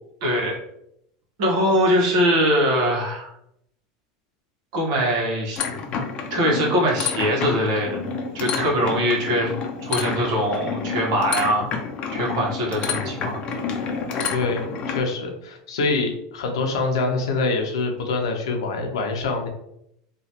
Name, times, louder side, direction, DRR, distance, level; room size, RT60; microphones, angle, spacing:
voice 1, 0.2-0.6 1.4-3.3 4.7-5.6 6.3-8.1 8.3-9.5 9.8-11.7 12.1-13.4, equal, 65° right, -2 dB, 1.1 m, -22 dB
sound 1, 5.6-15.0, left 5 dB, 40° left, 0.5 m, -29 dB
voice 2, 14.3-19.5, left 3 dB, 90° left, 3 dB, 0.7 m, -25 dB
3.0 x 2.4 x 2.8 m, 0.77 s
supercardioid pair, 115°, 3 cm